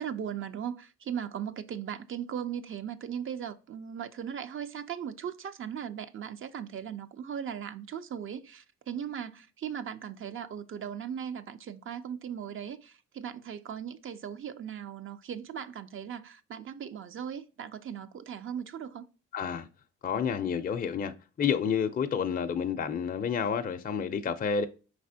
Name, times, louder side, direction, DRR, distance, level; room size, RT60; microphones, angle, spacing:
voice 1, 0.0-19.1, right 8 dB, 45° right, 0.5 m, -38 dB
voice 2, 19.3-19.7 20.0-21.1 21.4-24.7, left 7 dB, 30° left, 0.4 m, -29 dB
4.8 x 3.3 x 2.6 m
cardioid pair, 90°, 30 cm